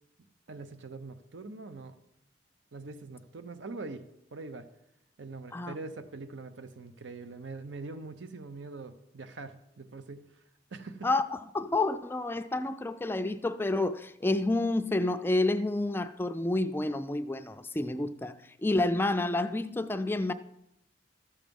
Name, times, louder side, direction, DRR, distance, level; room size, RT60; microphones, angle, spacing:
voice 1, 0.5-2.0 2.7-4.0 4.3-4.7 5.2-10.4 10.7-11.1, right 3 dB, 80° right, 0.7 m, -43 dB
voice 2, 11.0-20.3, left 2 dB, 10° left, 0.3 m, -29 dB
13.0 x 7.3 x 5.3 m
head